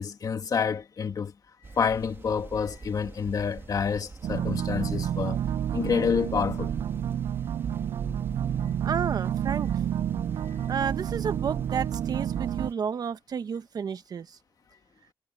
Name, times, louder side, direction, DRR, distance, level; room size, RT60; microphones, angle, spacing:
voice 1, 0.0-1.3 1.8-5.4 5.7-6.8, left 6 dB, 55° left, 1.9 m, -28 dB
sound 1, 1.6-12.7, right 3 dB, 30° right, 2.4 m, -43 dB
sound 2, 4.2-12.7, right 10 dB, 85° right, 0.6 m, -30 dB
voice 2, 8.8-9.7 10.7-14.4, right 7 dB, 60° right, 1.2 m, -31 dB
wide cardioid pair, 110°, 7 cm